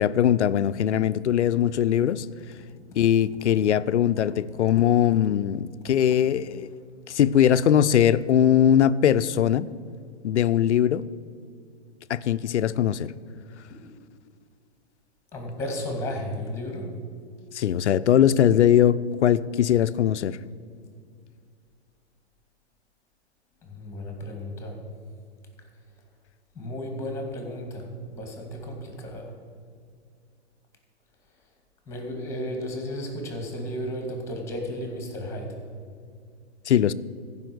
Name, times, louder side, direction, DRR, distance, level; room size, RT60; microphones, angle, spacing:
voice 1, 0.0-2.3 3.0-6.7 7.1-9.7 10.2-11.0 12.1-13.1 17.5-20.4 36.7-36.9, left 10 dB, 85° left, 15 dB, 0.5 m, -21 dB
voice 2, 15.3-17.0 23.6-24.8 26.5-29.3 31.9-35.6, equal, 10° left, 2 dB, 2.5 m, -34 dB
14.5 x 5.5 x 7.9 m, 2.2 s
hypercardioid pair, 130°, 34 cm